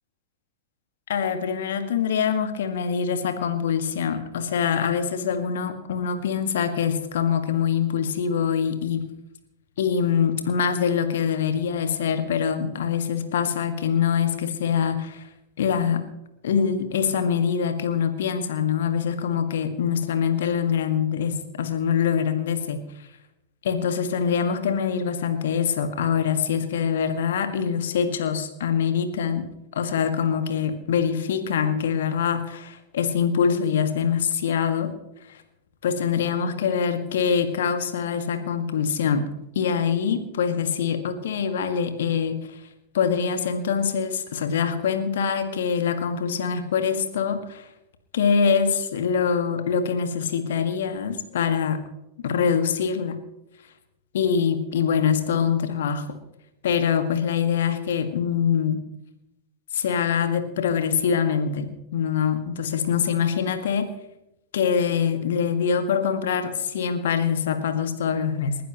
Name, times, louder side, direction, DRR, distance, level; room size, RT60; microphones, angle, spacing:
voice 1, 1.1-9.0 9.8-15.2 15.6-16.0 16.4-22.8 23.6-34.9 35.8-39.3 39.6-42.4 42.9-47.6 48.1-51.8 52.2-53.1 54.1-56.1 56.6-58.8 59.7-63.9 64.5-68.6, left 7 dB, 60° left, 8 dB, 1.8 m, -24 dB
29.5 x 11.5 x 3.1 m, 0.89 s
figure-of-eight pair, 90°, 0 cm